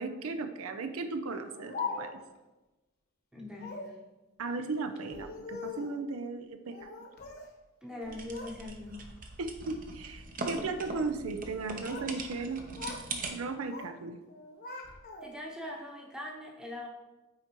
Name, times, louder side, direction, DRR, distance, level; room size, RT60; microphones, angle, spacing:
voice 1, 0.0-2.2 4.4-6.9 9.4-12.6 13.3-14.2, right 3 dB, 85° right, 8 dB, 0.5 m, -36 dB
Speech, 1.3-2.4 3.5-4.0 5.0-6.0 6.7-7.5 7.8-8.6 8.9-9.3 10.0-10.3 11.4-12.2 12.4-13.1 13.4-13.9 14.3-15.5, left 4 dB, 45° left, 0.9 m, -42 dB
voice 2, 3.3-4.0 7.8-9.0 15.2-16.9, left 1 dB, 5° right, -1 dB, 0.9 m, -42 dB
sound 1, 8.0-13.3, right 3 dB, 40° right, 0.7 m, -41 dB
8.5 x 4.3 x 3.0 m, 1.1 s
head